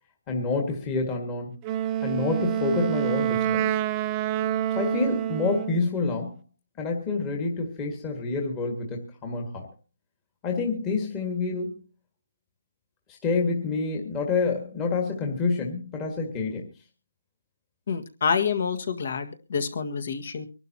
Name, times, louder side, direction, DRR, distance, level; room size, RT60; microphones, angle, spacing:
voice 1, 0.3-1.6 2.0-3.8 4.7-6.3 6.8-9.7 10.4-11.8 13.1-16.7, left 4 dB, 15° left, 1 dB, 1.7 m, -28 dB
Wind instrument woodwind instrument, 1.6-5.9, right 11 dB, 15° right, 0.7 m, -27 dB
voice 2, 17.9-20.5, left 6 dB, 50° left, 8 dB, 1.8 m, -27 dB
25.0 x 12.0 x 2.9 m, 0.32 s
hypercardioid pair, 170°, 0 cm